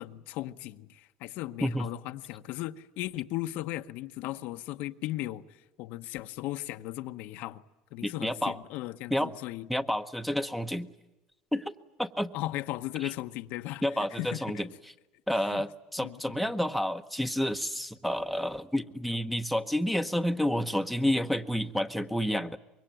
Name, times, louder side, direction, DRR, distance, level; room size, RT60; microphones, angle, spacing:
voice 1, 0.0-7.6 7.9-9.7 12.3-14.7 15.3-15.6 16.0-16.5, left 16 dB, 70° left, 0.9 m, -37 dB
voice 2, 8.0-8.6 9.1-9.3 9.7-10.9 11.5-11.7 12.0-12.3 13.0-13.1 13.8-14.7 15.3-22.6, equal, ahead, 1.0 m, -29 dB
25.0 x 22.5 x 9.1 m
cardioid pair, 120°, 3 cm